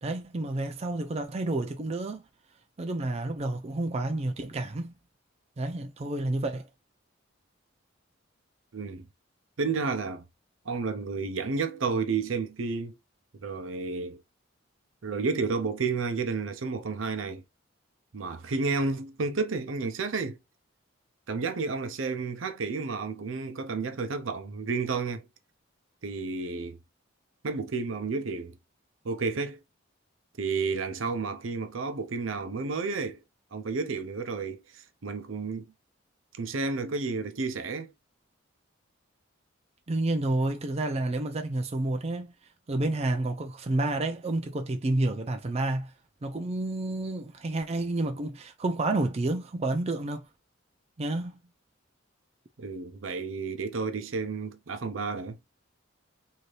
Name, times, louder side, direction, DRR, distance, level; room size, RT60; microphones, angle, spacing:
voice 1, 0.0-2.2 2.8-4.9 5.6-6.7 39.9-42.3 42.7-45.9 46.2-50.3 51.0-51.4, right 2 dB, 30° right, 0.4 m, -30 dB
voice 2, 8.7-9.1 9.6-10.2 10.7-13.0 13.4-14.2 15.0-17.4 18.1-20.4 21.3-25.3 26.0-26.8 27.4-28.6 29.0-29.6 30.4-33.2 33.5-35.6 36.4-37.9 52.6-55.4, right 4 dB, 75° right, 0.6 m, -31 dB
3.2 x 2.8 x 2.4 m
head